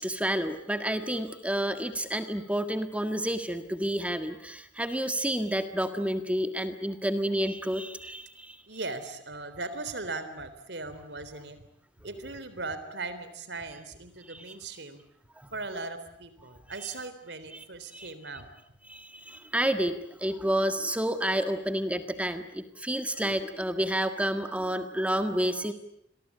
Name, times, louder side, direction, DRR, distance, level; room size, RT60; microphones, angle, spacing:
voice 1, 0.0-8.6 14.3-14.4 15.4-15.5 17.5-17.6 17.9-18.1 18.9-19.9 20.2-25.7, right 1 dB, 5° right, 8 dB, 1.7 m, -30 dB
voice 2, 8.7-11.6 12.0-15.0 15.5-18.5, right 3 dB, 65° right, 12 dB, 3.7 m, -38 dB
29.5 x 22.5 x 8.6 m, 0.73 s
head